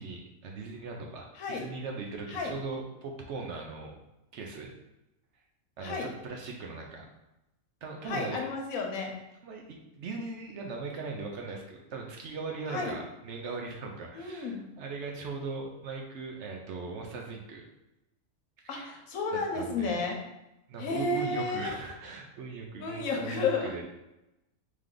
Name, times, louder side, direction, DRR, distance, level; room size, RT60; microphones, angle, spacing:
voice 1, 0.0-4.0 4.3-4.7 5.8-7.0 7.8-8.4 9.4-17.6 18.6-18.9 19.3-20.0 20.7-23.8, right 4 dB, 65° right, 1 dB, 0.9 m, -39 dB
voice 2, 8.1-9.1 12.7-12.9 14.1-14.6 18.7-20.2 20.8-21.7 22.8-23.7, left 4 dB, 90° left, 1 dB, 1.2 m, -32 dB
3.3 x 3.3 x 3.8 m, 0.92 s
omnidirectional pair, 1.4 m